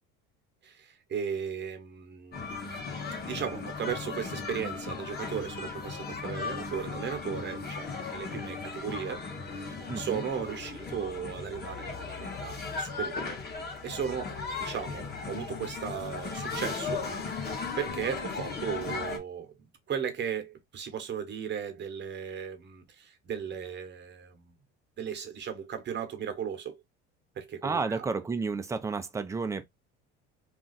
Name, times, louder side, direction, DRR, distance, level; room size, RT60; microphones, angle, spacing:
voice 1, 0.6-2.5 3.2-9.2 9.5-13.4 13.8-17.1 17.4-19.5 19.9-24.5 25.0-26.8 27.3-28.1, right 7 dB, 35° right, 0.9 m, -36 dB
sound 1, 2.3-19.2, left 4 dB, 35° left, 1.1 m, -37 dB
voice 2, 9.9-10.3 27.6-29.6, right 4 dB, 10° right, 0.4 m, -31 dB
2.5 x 2.3 x 3.9 m
cardioid pair, 110°, 29 cm